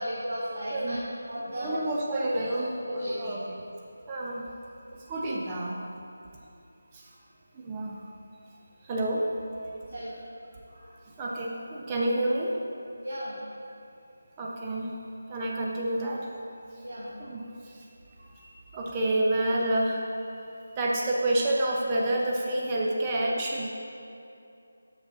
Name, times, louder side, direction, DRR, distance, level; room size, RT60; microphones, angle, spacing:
voice 1, 0.0-1.7 2.3-2.5 2.9-3.3 7.0-7.1 9.9-10.1 10.7-10.9 13.0-13.4 16.8-17.1 18.2-18.3, equal, 65° right, -8 dB, 1.4 m, -35 dB
voice 2, 0.7-1.0 1.5-2.7 3.0-3.6 4.1-4.5 4.9-5.8 6.9-7.1 7.5-8.0 8.8-9.3 11.2-12.5 14.4-14.9 15.3-16.3 17.2-17.9 18.3-23.7, right 1 dB, 20° right, -3 dB, 0.5 m, -29 dB
6.4 x 6.0 x 3.8 m, 2.7 s
figure-of-eight pair, 160°, 0 cm